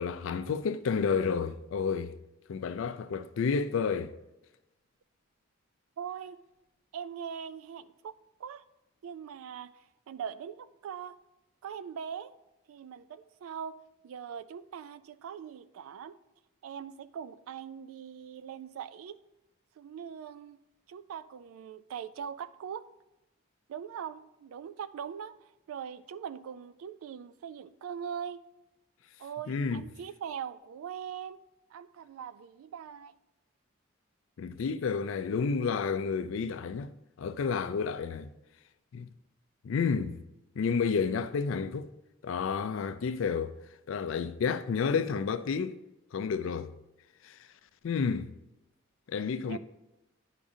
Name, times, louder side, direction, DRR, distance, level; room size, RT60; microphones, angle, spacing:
voice 1, 0.0-2.1 2.5-4.1 29.5-29.8 34.4-36.9 37.2-38.3 38.9-39.1 39.6-40.2 40.6-41.9 42.2-43.5 43.9-45.8 46.1-46.7 47.2-47.4 47.8-48.3 49.1-49.6, left 5 dB, 65° left, 0.4 m, -30 dB
voice 2, 6.0-6.4 6.9-8.6 9.0-11.2 11.6-12.3 12.7-13.8 14.0-16.2 16.6-19.2 19.8-20.6 20.9-22.9 23.7-28.4 29.2-31.4 31.7-33.1 49.5-49.6, right 8 dB, 80° right, 0.3 m, -41 dB
9.9 x 4.9 x 2.6 m
head